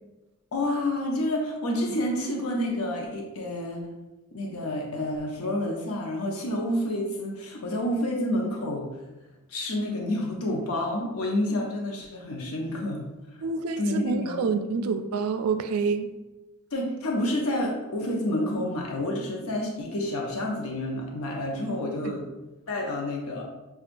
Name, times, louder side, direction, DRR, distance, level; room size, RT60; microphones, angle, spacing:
voice 1, 0.5-3.8 4.3-8.9 9.5-13.0 13.8-14.5 14.8-14.9 16.7-22.2 22.7-23.4, left 1 dB, 70° left, -1 dB, 0.7 m, -29 dB
voice 2, 13.4-16.1, right 5 dB, 75° right, 8 dB, 0.4 m, -27 dB
5.9 x 2.4 x 2.5 m, 1.0 s
head